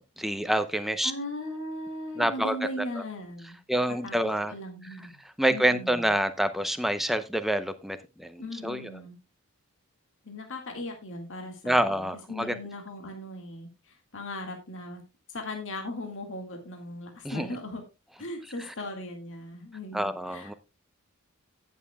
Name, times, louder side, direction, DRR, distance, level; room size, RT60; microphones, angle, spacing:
voice 1, 0.2-1.1 2.2-2.5 3.7-4.5 5.4-8.8 11.6-12.5 17.2-17.5 19.9-20.5, right 1 dB, ahead, 9 dB, 0.7 m, -27 dB
voice 2, 1.0-4.2 4.5-5.2 5.5-6.1 8.4-9.2 10.2-15.0 15.3-17.8 18.2-20.5, left 1 dB, 60° left, 3 dB, 2.1 m, -38 dB
17.0 x 7.4 x 2.3 m, 0.27 s
head